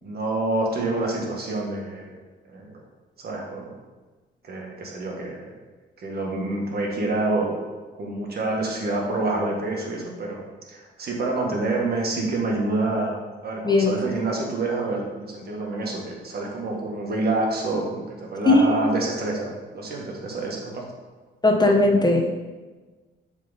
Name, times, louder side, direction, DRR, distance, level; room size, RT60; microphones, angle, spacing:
voice 1, 0.0-2.2 2.5-2.7 3.2-3.7 4.4-5.4 6.0-7.5 7.9-10.4 10.7-13.1 13.4-20.8, right 2 dB, 50° right, -1 dB, 1.5 m, -27 dB
voice 2, 18.5-18.8 21.4-22.2, left 2 dB, 20° left, 1 dB, 0.8 m, -17 dB
7.3 x 3.8 x 4.0 m, 1.3 s
cardioid pair, 90°, 20 cm